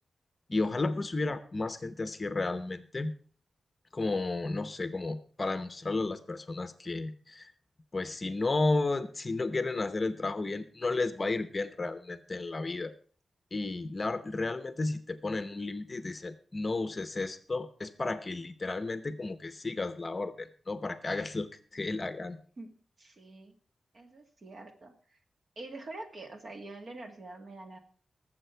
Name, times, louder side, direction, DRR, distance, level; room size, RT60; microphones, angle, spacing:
voice 1, 0.5-3.1 3.9-7.5 7.9-12.9 13.5-22.4, left 3 dB, 30° left, 12 dB, 0.8 m, -33 dB
voice 2, 23.0-23.5 23.9-25.2 25.6-27.8, right 2 dB, 45° right, 5 dB, 2.0 m, -45 dB
19.5 x 7.6 x 4.5 m, 0.43 s
wide cardioid pair, 155°, 0 cm